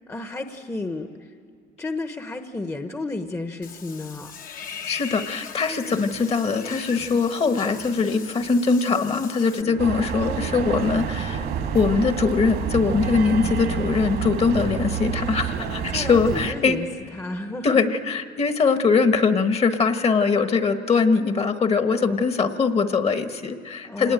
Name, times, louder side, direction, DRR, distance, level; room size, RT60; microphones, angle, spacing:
voice 1, 0.1-1.3 1.8-4.3 5.8-6.1 9.6-9.8 15.6-17.8 21.9-22.2 23.8-24.1, left 2 dB, 15° left, 7 dB, 1.0 m, -33 dB
Water / Bathtub (filling or washing), 3.6-9.6, left 7 dB, 55° left, 1.2 m, -40 dB
voice 2, 4.9-11.5 11.7-16.8 17.6-24.1, left 4 dB, 35° left, 8 dB, 1.3 m, -22 dB
sound 1, 9.8-16.5, right 7 dB, 75° right, 2.1 m, -28 dB
26.0 x 19.5 x 8.9 m, 2.3 s
cardioid pair, 110°, 17 cm